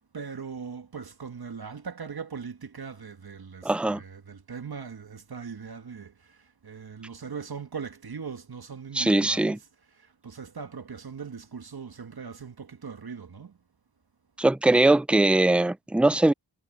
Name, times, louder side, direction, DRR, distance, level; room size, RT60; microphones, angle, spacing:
voice 1, 0.1-13.6, right 6 dB, 60° right, 1.9 m, -40 dB
voice 2, 3.6-4.0 8.9-9.6 14.4-16.3, right 2 dB, 5° right, 0.6 m, -21 dB
cardioid pair, 40°, 43 cm